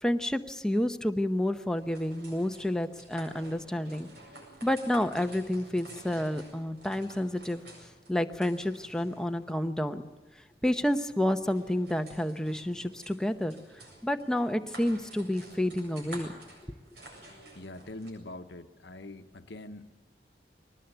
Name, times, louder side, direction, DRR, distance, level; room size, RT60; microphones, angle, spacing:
voice 1, 0.0-4.1 4.6-7.6 8.1-10.0 10.6-13.6 14.0-16.3, left 1 dB, 5° left, 7 dB, 0.8 m, -29 dB
sound 1, 1.6-18.1, right 2 dB, 70° right, 7.7 m, -51 dB
voice 2, 17.5-19.9, left 2 dB, 80° left, 6 dB, 1.1 m, -43 dB
21.5 x 19.0 x 7.9 m, 1.3 s
head